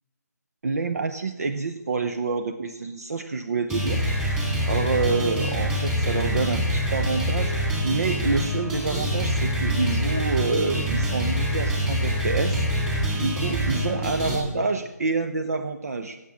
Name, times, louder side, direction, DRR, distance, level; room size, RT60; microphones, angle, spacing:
voice 1, 0.6-4.1 4.6-7.6 7.8-12.7 13.1-16.2, right 4 dB, 60° right, 9 dB, 0.8 m, -27 dB
sound 1, 3.7-14.4, equal, 10° right, 2.3 m, -25 dB
17.0 x 7.4 x 6.3 m, 1.1 s
figure-of-eight pair, 160°, 10 cm